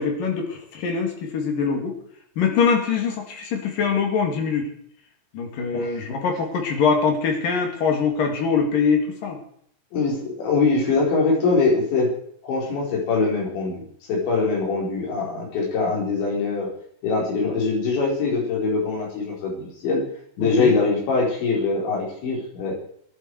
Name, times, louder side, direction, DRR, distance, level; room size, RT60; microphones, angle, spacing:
voice 1, 0.0-1.9 2.4-4.7 5.3-9.4 20.4-20.7, left 5 dB, 50° left, 3 dB, 3.9 m, -23 dB
voice 2, 9.9-12.1 12.4-16.7 17.0-20.0 20.4-22.7, left 4 dB, 75° left, -1 dB, 6.7 m, -23 dB
20.5 x 11.0 x 4.8 m, 0.65 s
omnidirectional pair, 5.3 m